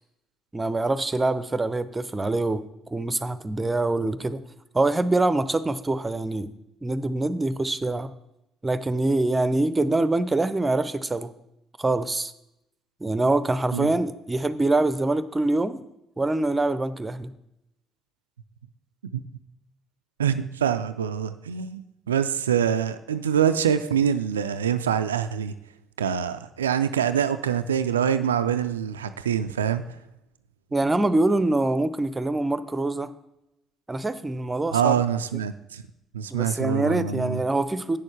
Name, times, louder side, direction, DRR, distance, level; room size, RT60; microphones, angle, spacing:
voice 1, 0.5-2.6 2.9-4.4 4.7-6.5 6.8-8.1 8.6-11.3 11.8-12.3 13.0-15.8 16.2-17.3 30.7-33.1 33.9-35.0 36.3-38.0, right 2 dB, 20° right, 13 dB, 0.7 m, -24 dB
voice 2, 20.2-25.5 26.0-29.8 34.7-35.8 36.1-37.4, right 8 dB, 80° right, 11 dB, 0.3 m, -25 dB
8.8 x 6.5 x 5.6 m, 0.85 s
figure-of-eight pair, 50°, 0 cm